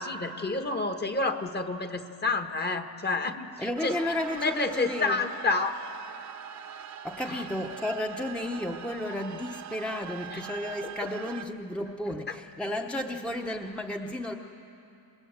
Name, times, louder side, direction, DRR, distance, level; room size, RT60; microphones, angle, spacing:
voice 1, 0.0-4.0 4.3-5.7 7.3-7.4 10.3-10.4 11.0-11.1 12.3-12.4, left 3 dB, 25° left, 7 dB, 1.4 m, -29 dB
voice 2, 3.6-5.2 7.0-14.3, left 1 dB, 5° left, 2 dB, 0.9 m, -33 dB
sound 1, 3.8-11.4, right 9 dB, 50° right, 0.8 m, -42 dB
27.0 x 21.0 x 8.1 m, 2.8 s
cardioid pair, 125°, 37 cm